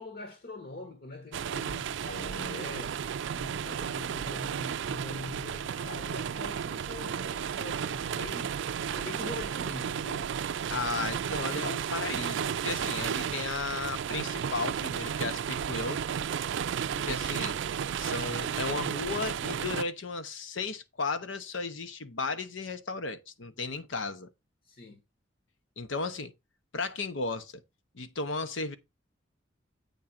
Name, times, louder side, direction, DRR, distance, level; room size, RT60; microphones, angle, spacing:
voice 1, 0.0-3.0 3.3-8.5 8.9-10.3 16.9-17.2 24.6-25.0, left 2 dB, 50° left, 1.2 m, -43 dB
sound 1, 1.3-19.8, right 8 dB, 65° right, 0.4 m, -33 dB
voice 2, 2.1-2.6 10.7-16.2 17.0-17.6 18.0-24.3 25.8-26.3 26.7-27.6 27.9-28.8, left 3 dB, 80° left, 1.0 m, -35 dB
8.4 x 3.7 x 5.9 m
head